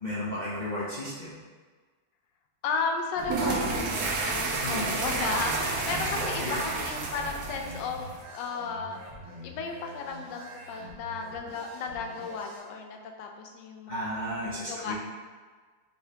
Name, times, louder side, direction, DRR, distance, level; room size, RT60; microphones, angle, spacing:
voice 1, 0.0-1.3 4.6-4.9 6.0-6.5 13.9-15.0, left 1 dB, 60° left, -9 dB, 0.4 m, -34 dB
voice 2, 2.6-9.0 9.4-14.1 14.7-15.0, left 5 dB, 75° left, 3 dB, 1.2 m, -34 dB
sound 1, 3.2-8.2, right 3 dB, 65° right, 0.9 m, -30 dB
sound 2, 5.7-12.6, right 1 dB, 85° right, 2.0 m, -46 dB
5.6 x 2.8 x 3.3 m, 1.4 s
omnidirectional pair, 2.0 m